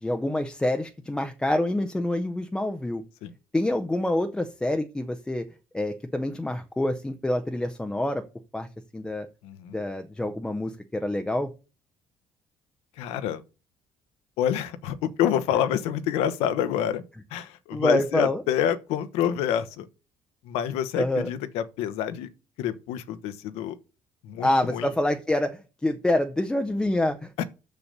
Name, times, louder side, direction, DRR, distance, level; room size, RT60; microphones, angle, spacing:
voice 1, 0.0-3.0 3.5-5.5 5.7-8.2 8.5-8.7 8.9-9.3 9.7-11.5 17.7-18.4 21.0-21.3 24.4-27.4, left 1 dB, 5° left, 0.6 m, -26 dB
voice 2, 9.4-9.8 12.9-13.4 14.4-17.0 17.3-19.9 20.4-22.3 22.6-23.8 24.2-24.9 27.4-27.5, left 10 dB, 90° left, 1.1 m, -27 dB
7.0 x 6.8 x 6.6 m
cardioid pair, 170°, 10 cm